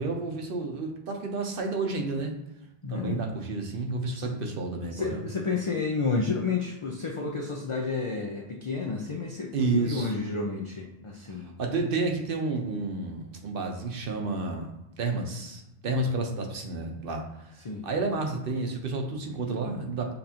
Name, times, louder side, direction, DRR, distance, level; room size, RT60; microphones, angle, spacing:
voice 1, 0.0-2.3 2.9-5.2 9.5-10.1 11.6-14.7 15.0-17.2 17.8-20.1, right 3 dB, 60° right, 2 dB, 0.9 m, -30 dB
voice 2, 2.8-3.2 4.1-4.3 4.9-11.5 15.9-16.1 17.6-17.9, left 4 dB, 45° left, 0 dB, 0.4 m, -31 dB
6.8 x 2.6 x 2.8 m, 0.95 s
omnidirectional pair, 1.1 m